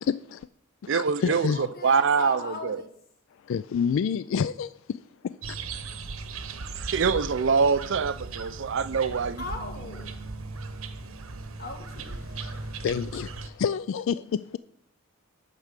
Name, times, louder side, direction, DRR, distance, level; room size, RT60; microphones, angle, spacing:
voice 1, 0.1-0.5 0.8-1.6 3.4-5.6 12.4-14.6, left 7 dB, 65° left, 0.3 m, -29 dB
voice 2, 0.9-2.8 6.8-9.4, right 5 dB, 60° right, 0.5 m, -25 dB
voice 3, 1.5-2.9 9.4-10.1 11.6-12.3, left 2 dB, 45° left, 1.9 m, -37 dB
sound 1, 5.4-13.5, right 4 dB, 75° right, 1.0 m, -37 dB
9.5 x 6.0 x 6.7 m
head